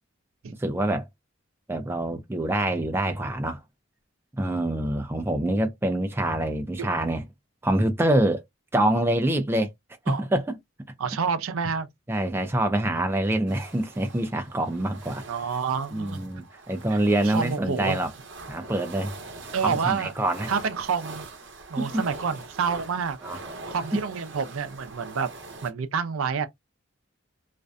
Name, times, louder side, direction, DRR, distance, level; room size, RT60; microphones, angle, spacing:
voice 1, 0.6-1.0 1.7-3.6 4.4-7.2 7.6-8.4 8.7-9.7 10.1-10.6 12.1-15.2 15.9-18.1 18.5-19.1 19.6-20.5 21.8-22.0 23.2-23.4 23.9-24.0, right 1 dB, 10° right, 0.3 m, -25 dB
voice 2, 11.0-11.9 15.3-16.2 16.9-17.0 17.2-18.0 19.5-20.1 20.5-21.2 21.7-23.2 23.7-25.3 25.6-26.5, right 6 dB, 85° right, 0.5 m, -28 dB
sound 1, 13.5-25.7, right 3 dB, 60° right, 0.8 m, -43 dB
2.5 x 2.1 x 2.4 m
head